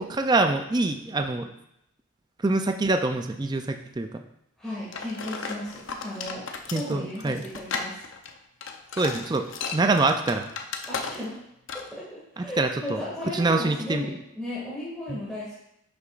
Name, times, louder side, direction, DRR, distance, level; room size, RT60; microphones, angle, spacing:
voice 1, 0.0-1.5 2.4-4.2 6.7-7.4 9.0-9.5 9.7-10.5 12.4-13.0 13.3-14.2 15.1-15.2, right 3 dB, 20° right, 6 dB, 0.3 m, -25 dB
voice 2, 4.6-6.5 6.7-8.0 10.9-11.4 11.7-15.6, left 1 dB, 5° left, -10 dB, 2.0 m, -35 dB
sound 1, 4.9-11.4 11.7-11.9, left 5 dB, 55° left, 0.7 m, -35 dB
10.5 x 6.8 x 2.4 m, 0.81 s
head